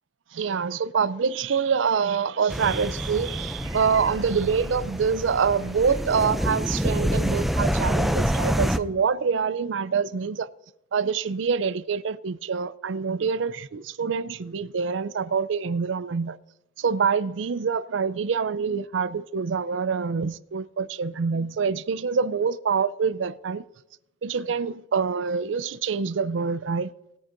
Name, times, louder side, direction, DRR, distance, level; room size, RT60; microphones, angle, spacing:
voice 1, 0.3-10.5 10.9-16.4 16.8-23.6 24.2-26.9, right 6 dB, 80° right, 0.5 m, -26 dB
sound 1, 2.5-8.8, equal, ahead, 0.4 m, -27 dB
20.0 x 8.8 x 2.6 m
head